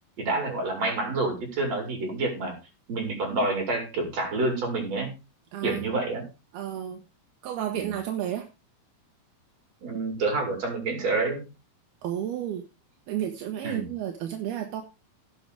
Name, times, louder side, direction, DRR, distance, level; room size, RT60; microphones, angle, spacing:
voice 1, 0.2-2.6 2.9-5.1 5.6-6.2 7.6-7.9 9.8-11.5 13.6-13.9, right 2 dB, 40° right, 1 dB, 6.2 m, -28 dB
voice 2, 5.5-5.9 6.5-7.0 7.4-8.5 12.0-12.7 13.1-14.8, right 10 dB, 75° right, 3 dB, 3.2 m, -32 dB
17.5 x 7.9 x 3.6 m, 0.28 s
omnidirectional pair, 4.5 m